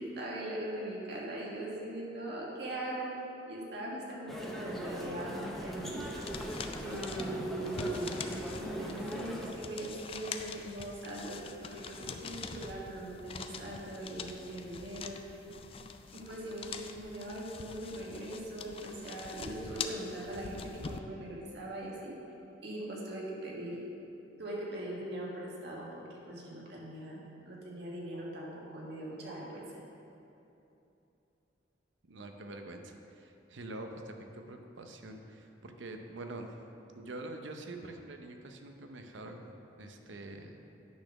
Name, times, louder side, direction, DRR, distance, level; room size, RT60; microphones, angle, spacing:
voice 1, 0.0-3.1 3.5-6.0 6.8-11.4 11.6-15.4 16.1-22.1 22.6-23.8 24.4-27.2 27.4-29.6, right 1 dB, 60° right, -4 dB, 1.5 m, -40 dB
sound 1, 4.3-9.5, equal, ahead, 0.7 m, -40 dB
sound 2, 6.0-21.0, left 5 dB, 30° left, 0.3 m, -44 dB
voice 2, 32.0-36.5 36.9-40.7, right 2 dB, 85° right, 4 dB, 0.7 m, -45 dB
9.4 x 4.2 x 5.9 m, 2.9 s
head